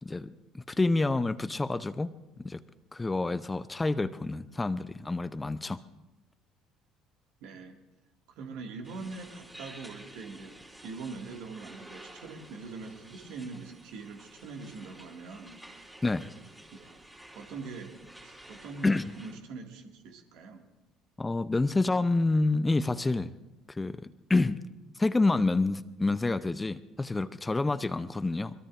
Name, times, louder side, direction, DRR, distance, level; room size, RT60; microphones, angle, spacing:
voice 1, 0.0-2.2 2.4-2.6 2.9-5.8 16.0-16.3 18.8-19.1 21.2-23.3 23.7-24.6 25.0-28.5, left 2 dB, 15° left, 15 dB, 0.6 m, -28 dB
voice 2, 7.4-7.8 8.3-10.6 10.8-15.6 16.8-17.0 17.4-18.0 18.2-18.9 19.2-20.7, right 4 dB, 60° right, 3 dB, 2.1 m, -43 dB
sound 1, 8.8-19.4, right 1 dB, 10° right, 3.3 m, -51 dB
25.0 x 22.0 x 2.6 m, 1.0 s
figure-of-eight pair, 55°, 0 cm